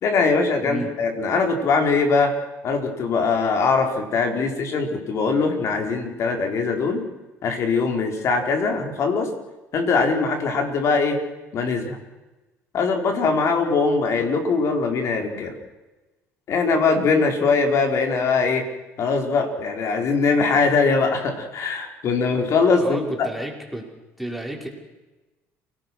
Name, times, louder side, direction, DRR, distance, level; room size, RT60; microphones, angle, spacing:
voice 1, 0.0-2.4 2.6-7.0 7.4-9.3 9.7-11.2 11.5-12.0 12.7-15.5 16.5-18.7 19.0-23.3, left 4 dB, 55° left, 4 dB, 4.9 m, -21 dB
voice 2, 22.8-23.8 24.2-24.7, right 1 dB, ahead, 0 dB, 5.8 m, -31 dB
29.0 x 19.0 x 6.4 m, 1.1 s
supercardioid pair, 95°, 6 cm